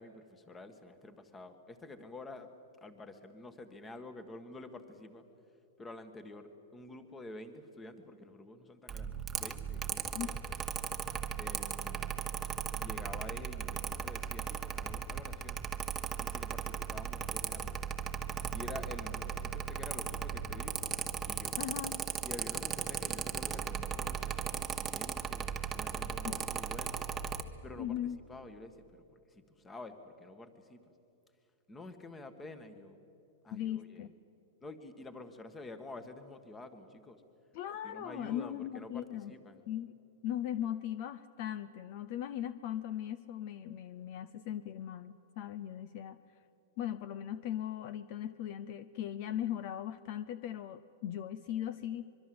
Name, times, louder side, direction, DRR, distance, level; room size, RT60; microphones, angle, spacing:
voice 1, 0.0-2.5 2.8-5.2 5.8-10.4 11.4-12.3 12.7-15.6 16.2-17.9 18.5-20.8 21.3-21.5 22.2-27.0 27.6-28.0 28.3-30.8 31.7-33.0 33.4-34.1 34.6-37.2 37.8-39.6, left 2 dB, 10° left, 10 dB, 1.6 m, -49 dB
Mechanical fan, 8.9-27.4, right 7 dB, 15° right, 1.1 m, -37 dB
voice 2, 21.6-22.0 26.2-26.4 27.8-28.2 33.5-34.1 37.5-39.3 39.7-39.9 40.2-46.2 46.8-52.0, left 11 dB, 45° left, 15 dB, 0.7 m, -38 dB
24.5 x 23.0 x 7.9 m, 2.9 s
supercardioid pair, 150°, 0 cm